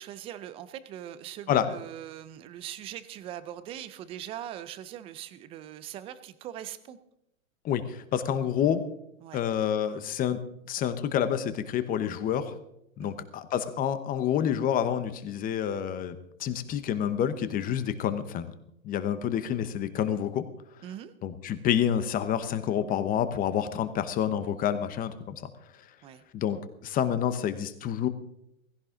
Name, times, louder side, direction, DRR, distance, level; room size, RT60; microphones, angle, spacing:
voice 1, 0.0-7.0 9.2-9.4 13.0-13.2 20.8-21.1 26.0-26.2, right 11 dB, 15° right, 13 dB, 0.5 m, -41 dB
voice 2, 7.6-8.8 9.3-10.4 10.7-12.5 13.0-18.5 18.8-20.4 21.2-25.4 26.3-28.1, left 9 dB, 20° left, 12 dB, 1.0 m, -28 dB
17.5 x 16.0 x 3.8 m, 0.77 s
hypercardioid pair, 130°, 42 cm